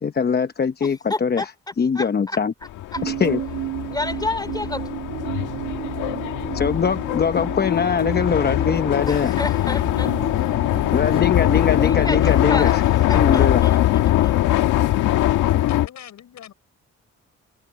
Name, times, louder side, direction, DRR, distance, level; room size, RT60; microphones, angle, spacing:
voice 1, 0.0-1.5 1.8-2.5 3.0-3.4 6.5-9.4 10.9-12.8 13.1-13.6, left 6 dB, 30° left, 0.9 m, -22 dB
voice 2, 0.8-1.4 1.9-2.4 2.9-3.0 3.9-4.9 9.1-10.1 11.7-12.7 13.1-13.8 14.2-14.3, left 2 dB, 15° left, 2.9 m, -30 dB
sound 1, 2.6-15.9, left 14 dB, 90° left, 1.6 m, -21 dB
sound 2, 3.0-11.1, right 15 dB, 90° right, 2.6 m, -33 dB
sound 3, 8.0-13.1, right 2 dB, 15° right, 5.9 m, -48 dB
voice 3, 15.4-16.5, left 10 dB, 70° left, 6.1 m, -41 dB
cardioid pair, 90°, 30 cm